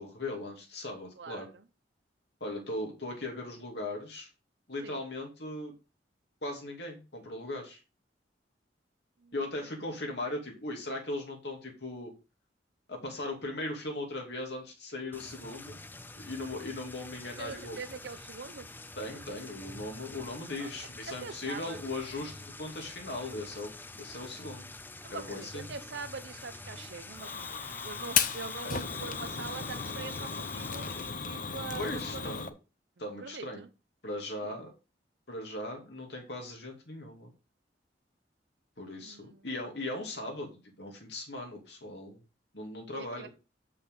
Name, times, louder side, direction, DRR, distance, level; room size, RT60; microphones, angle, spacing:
voice 1, 0.0-1.5 2.4-4.3 4.7-5.7 6.4-7.8 9.3-12.1 12.9-15.8 16.2-17.8 19.0-23.7 24.0-24.7 25.1-25.7 28.6-28.8 31.7-32.5 33.0-33.6 34.0-34.7 35.3-37.3 38.8-42.2 42.5-43.3, left 2 dB, 65° left, 1 dB, 2.8 m, -38 dB
voice 2, 1.2-1.6 4.8-5.0 9.2-9.3 17.4-18.7 20.6-20.7 21.1-21.8 25.0-32.4 33.2-33.7 34.4-34.6 39.0-39.5 42.9-43.3, right 4 dB, 75° right, 10 dB, 0.7 m, -44 dB
sound 1, 15.1-31.1, left 2 dB, 10° left, 0.5 m, -47 dB
Fire, 27.2-32.5, left 7 dB, 45° left, 0.7 m, -34 dB
7.6 x 6.5 x 3.9 m, 0.30 s
head